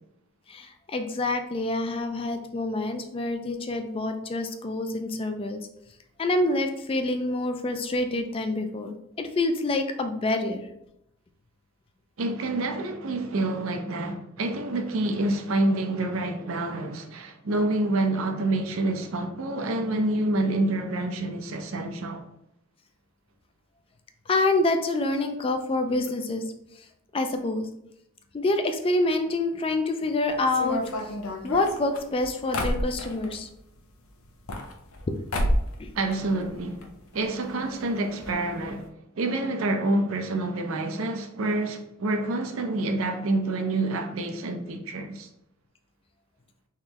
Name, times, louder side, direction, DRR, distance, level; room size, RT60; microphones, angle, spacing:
voice 1, 0.5-5.6 6.2-10.7 24.3-26.5 26.8-26.9 27.1-27.7 28.3-31.1 31.4-33.5 35.1-35.2 35.8-35.9, left 2 dB, 25° left, 0.3 m, -27 dB
voice 2, 12.2-22.2 35.9-36.9 37.1-45.3, right 2 dB, 75° right, 0.6 m, -27 dB
sound 1, 30.5-33.4 34.2-35.0 35.3-35.8 36.1-36.9 37.1-37.2 37.4-37.5 38.2-38.3 38.6-38.8, left 1 dB, 80° left, 0.6 m, -29 dB
3.6 x 3.1 x 2.8 m
head